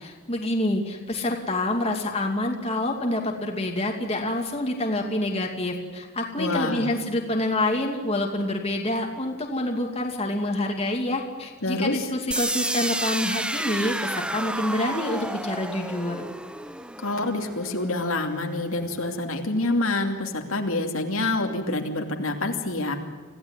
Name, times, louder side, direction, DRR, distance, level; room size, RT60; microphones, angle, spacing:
voice 1, 0.0-16.2, left 1 dB, 25° left, 1 dB, 2.6 m, -27 dB
voice 2, 6.4-6.9 11.6-12.1 17.0-22.9, left 2 dB, 70° left, 3 dB, 2.7 m, -27 dB
sound 1, 12.3-18.2, right 1 dB, 5° right, 0.7 m, -31 dB
26.0 x 16.0 x 9.7 m, 1.4 s
head